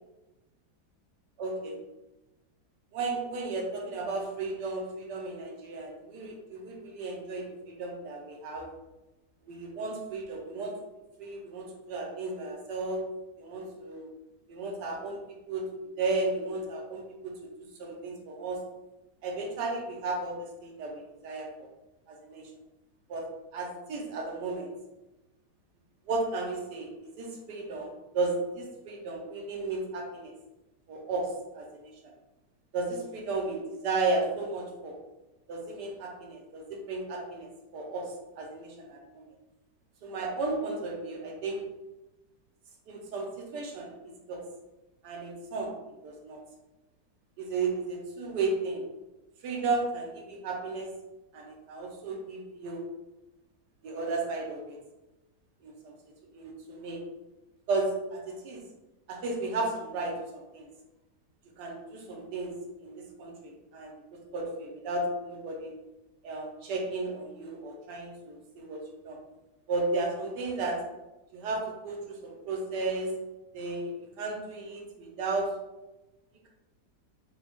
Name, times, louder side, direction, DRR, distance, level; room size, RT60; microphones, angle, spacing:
voice 1, 1.4-1.8 2.9-8.7 9.4-10.7 11.2-13.0 13.4-14.1 14.5-15.2 15.5-15.7 16.0-17.3 17.8-18.6 19.2-21.7 22.1-22.4 23.1-23.2 23.5-24.7 26.1-30.3 30.9-31.3 31.5-31.9 32.7-34.9 35.5-39.2 40.0-41.6 42.9-43.9 44.3-44.4 45.0-45.7 46.0-46.4 47.4-48.9 49.4-50.9 51.3-52.9 53.8-54.8 55.6-55.9 56.3-57.0 57.7-58.6 59.1-60.7 61.6-62.5 62.8-65.7 66.2-69.2 69.7-70.8 71.3-73.1 73.5-75.5, right 3 dB, 85° right, 0 dB, 1.4 m, -34 dB
5.4 x 2.3 x 2.9 m, 1.0 s
omnidirectional pair, 1.8 m